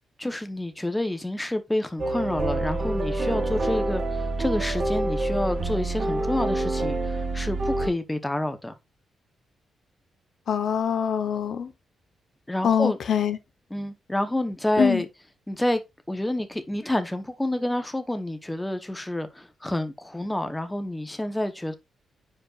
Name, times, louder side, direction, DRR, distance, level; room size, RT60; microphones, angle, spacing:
voice 1, 0.2-8.7 12.5-13.0 13.7-15.1 15.5-15.8 16.1-21.7, left 1 dB, 10° left, 0.9 m, -28 dB
sound 1, 2.0-7.9, right 2 dB, 45° right, 2.5 m, -27 dB
voice 2, 10.5-11.7 12.6-13.4 14.8-15.0, left 7 dB, 60° left, 0.9 m, -24 dB
9.5 x 5.2 x 2.4 m
cardioid pair, 125°, 0 cm